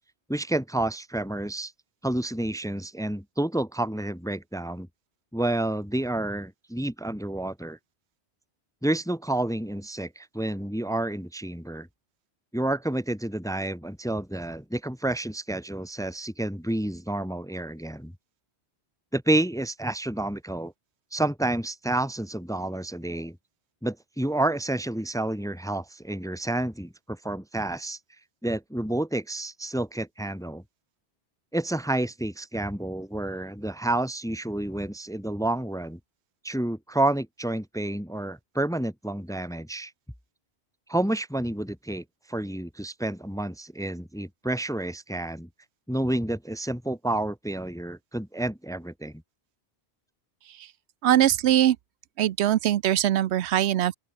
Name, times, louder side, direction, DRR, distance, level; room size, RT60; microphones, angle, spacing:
voice 1, 0.3-1.7 2.0-4.9 5.3-7.8 8.8-11.9 12.5-18.1 19.1-20.7 21.1-23.4 23.8-28.0 28.4-30.6 31.5-36.0 36.4-39.9 40.9-45.5 45.9-49.2, right 1 dB, 5° left, 0.8 m, -29 dB
voice 2, 51.0-51.8 52.2-53.9, right 12 dB, 85° right, 0.9 m, -22 dB
open air
omnidirectional pair, 1.1 m